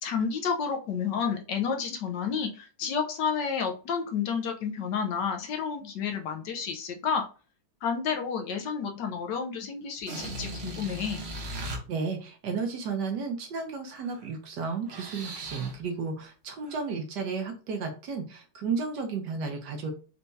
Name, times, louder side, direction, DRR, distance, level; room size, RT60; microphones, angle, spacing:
voice 1, 0.0-7.2 7.8-11.2, left 6 dB, 70° left, 4 dB, 1.2 m, -30 dB
sound 1, 10.0-11.8 14.0-14.3 14.6-15.8 16.6-16.8, right 1 dB, 45° right, 0.8 m, -38 dB
voice 2, 11.5-19.9, right 5 dB, 65° right, 4 dB, 1.3 m, -33 dB
4.5 x 3.3 x 2.6 m, 0.36 s
omnidirectional pair, 2.2 m